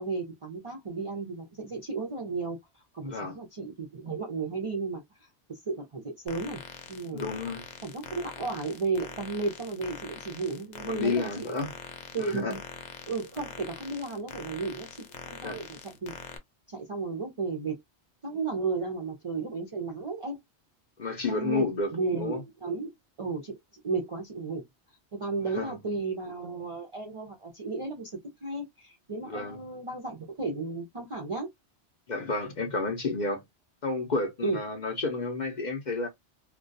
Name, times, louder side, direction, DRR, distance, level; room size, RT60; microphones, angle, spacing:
voice 1, 0.0-2.6 2.9-5.3 5.7-6.6 6.9-7.3 7.8-11.7 12.1-12.6 13.1-16.1 16.7-17.8 18.2-20.4 21.3-22.9 23.2-23.5 23.8-24.6 25.2-28.1 28.4-31.5 34.4-34.6, right 3 dB, 45° right, 0.4 m, -34 dB
voice 2, 3.0-3.4 7.1-7.6 10.8-11.7 12.2-12.6 15.4-15.6 21.0-21.9 22.2-22.4 25.5-25.8 29.3-29.6 32.1-33.4 33.8-36.1, left 3 dB, 50° left, 0.6 m, -31 dB
sound 1, 6.3-16.4, left 6 dB, 85° left, 0.9 m, -44 dB
2.2 x 2.2 x 2.5 m
omnidirectional pair, 1.2 m